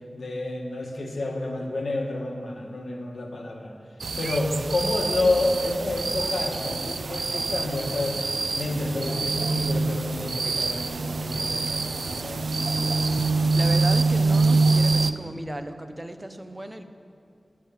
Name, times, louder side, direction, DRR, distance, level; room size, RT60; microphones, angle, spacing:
voice 1, 0.1-3.7 4.2-12.8, left 2 dB, 90° left, 1 dB, 1.4 m, -29 dB
sound 1, 4.0-15.1, right 3 dB, 85° right, 0.4 m, -25 dB
voice 2, 13.5-16.8, right 1 dB, 20° right, 8 dB, 0.7 m, -35 dB
12.0 x 7.4 x 7.2 m, 2.4 s
wide cardioid pair, 85°, 0 cm